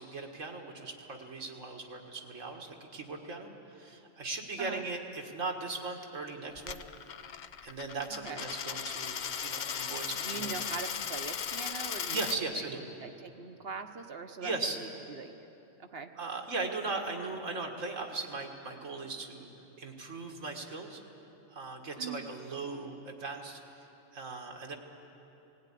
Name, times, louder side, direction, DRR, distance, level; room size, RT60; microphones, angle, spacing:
voice 1, 0.0-6.8 7.6-10.6 12.1-12.8 14.4-14.8 16.2-19.5 19.8-21.0 21.5-23.9 24.1-24.8, right 3 dB, 90° right, 2 dB, 2.1 m, -38 dB
Coin (dropping), 6.6-12.4, left 7 dB, 50° left, 0.6 m, -37 dB
voice 2, 8.1-8.4 10.1-12.2 12.6-12.7 13.0-15.3 15.8-16.1 21.9-22.3, right 5 dB, 55° right, 7 dB, 1.1 m, -42 dB
18.0 x 17.5 x 10.0 m, 3.0 s
omnidirectional pair, 1.3 m